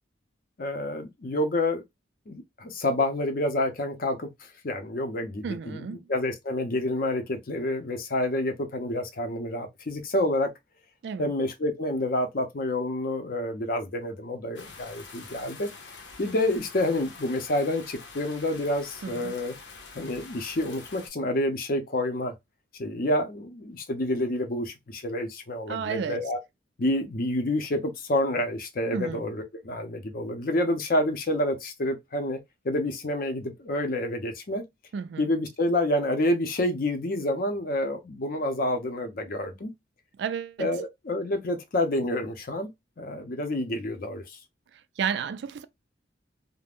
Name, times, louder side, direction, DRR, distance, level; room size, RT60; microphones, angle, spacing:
voice 1, 0.6-1.8 2.3-4.3 4.6-10.5 11.2-15.7 16.2-19.5 19.9-22.3 22.8-26.4 26.8-32.4 32.6-34.6 35.2-39.7 40.6-42.7 43.0-44.4, left 1 dB, 50° left, 0.6 m, -28 dB
voice 2, 5.4-6.1 11.0-11.3 19.0-19.4 25.7-26.3 28.9-29.2 34.9-35.3 40.2-40.7 45.0-45.6, right 7 dB, 70° right, 0.3 m, -32 dB
sound 1, 14.5-21.1, left 4 dB, 90° left, 0.8 m, -46 dB
2.4 x 2.1 x 3.3 m
head